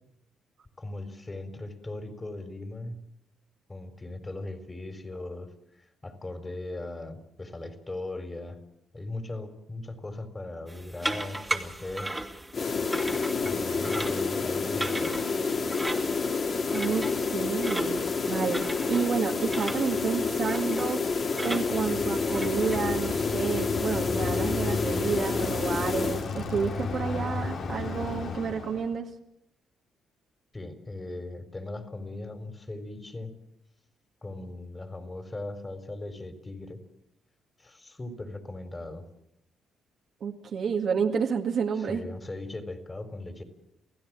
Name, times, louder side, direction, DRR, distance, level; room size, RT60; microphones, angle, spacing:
voice 1, 0.8-3.0 3.7-5.5 5.8-8.6 8.9-12.1 13.4-15.2 30.5-33.3 34.2-36.8 37.6-39.0 41.8-43.4, left 2 dB, 20° left, 8 dB, 4.1 m, -38 dB
sound 1, 10.7-23.1, right 1 dB, 10° right, 2.6 m, -38 dB
sound 2, 12.5-26.3, left 4 dB, 45° left, 3.3 m, -29 dB
voice 2, 16.7-18.0 18.3-21.0 21.4-29.1 40.2-42.0, right 6 dB, 60° right, 1 dB, 2.1 m, -30 dB
Bicycle, 21.4-28.9, left 4 dB, 60° left, 3.8 m, -34 dB
28.5 x 16.0 x 7.5 m, 0.78 s
cardioid pair, 90°, 0 cm